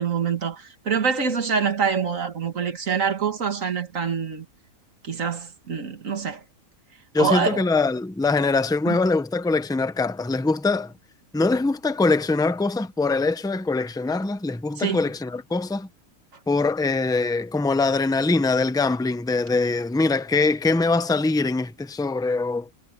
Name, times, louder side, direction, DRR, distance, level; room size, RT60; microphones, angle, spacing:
voice 1, 0.0-4.5 5.0-6.4 7.2-7.6 8.9-9.0 14.8-15.1, right 6 dB, 60° right, 2.1 m, -25 dB
voice 2, 7.1-10.9 11.3-15.9 16.5-22.7, left 3 dB, 5° left, 0.5 m, -23 dB
omnidirectional pair, 1.6 m